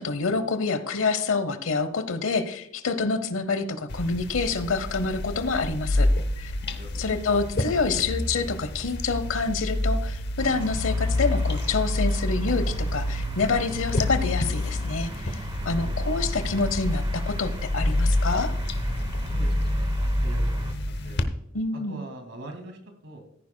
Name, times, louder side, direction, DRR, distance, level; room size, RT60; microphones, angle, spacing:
voice 1, 0.0-6.1 6.4-6.5 7.0-15.4 15.6-18.5 21.5-22.0, left 4 dB, 80° left, 12 dB, 0.9 m, -27 dB
sound 1, 3.9-21.2, left 1 dB, 55° left, 0.9 m, -28 dB
voice 2, 6.7-7.1 15.5-16.1 19.2-21.2 21.7-23.2, right 1 dB, 65° right, 5 dB, 2.3 m, -43 dB
sound 2, 10.4-20.7, equal, 25° right, 0.9 m, -36 dB
14.5 x 9.7 x 2.2 m, 0.74 s
head